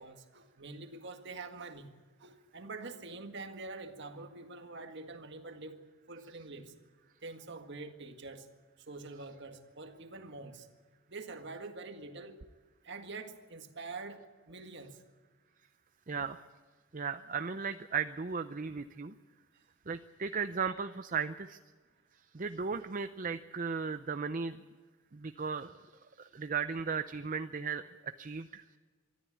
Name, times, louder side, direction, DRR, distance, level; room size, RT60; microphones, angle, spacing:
voice 1, 0.0-1.9 2.2-6.7 7.2-8.5 8.9-10.7 11.1-12.4 12.8-15.0 19.5-19.6, right 3 dB, 55° right, 1.9 m, -45 dB
voice 2, 16.1-16.4 16.9-19.1 19.9-21.6 22.3-24.6 25.1-25.9 26.2-28.6, right 5 dB, 40° right, 0.6 m, -36 dB
24.0 x 13.5 x 8.6 m
head